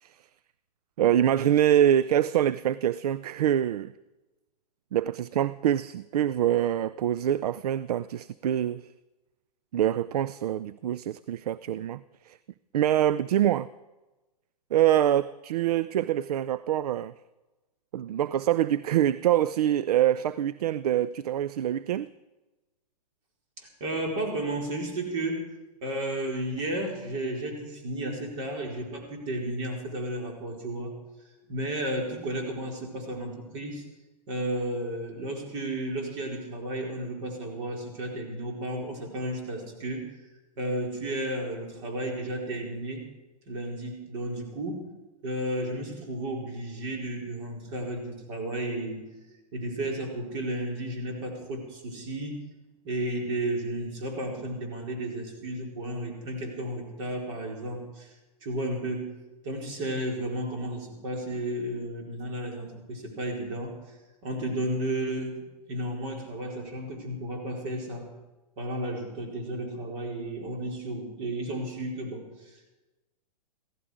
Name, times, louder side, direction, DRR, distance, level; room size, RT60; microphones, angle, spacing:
voice 1, 1.0-3.9 4.9-8.9 9.7-12.4 12.7-13.7 14.7-17.1 17.9-22.1, right 11 dB, 70° right, 17 dB, 0.5 m, -25 dB
voice 2, 23.6-25.4 25.8-30.9 31.5-33.9 34.3-40.1 40.6-43.0 43.5-44.9 45.2-49.2 49.5-52.4 52.8-58.1 58.4-64.0 64.2-68.1 68.6-72.8, right 1 dB, 50° right, 1 dB, 4.4 m, -33 dB
16.0 x 14.5 x 5.0 m, 1.1 s
hypercardioid pair, 125°, 21 cm